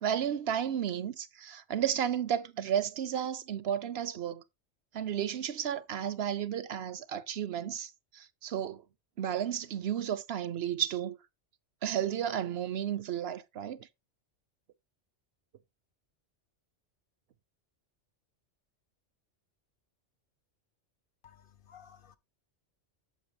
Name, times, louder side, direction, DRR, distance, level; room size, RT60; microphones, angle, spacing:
voice 1, 0.0-4.4 4.9-8.8 9.2-11.2 11.8-13.8, right 9 dB, 65° right, 0.9 m, -33 dB
voice 2, 21.2-22.2, left 8 dB, 55° left, 0.8 m, -56 dB
8.5 x 7.7 x 2.9 m
omnidirectional pair, 1.2 m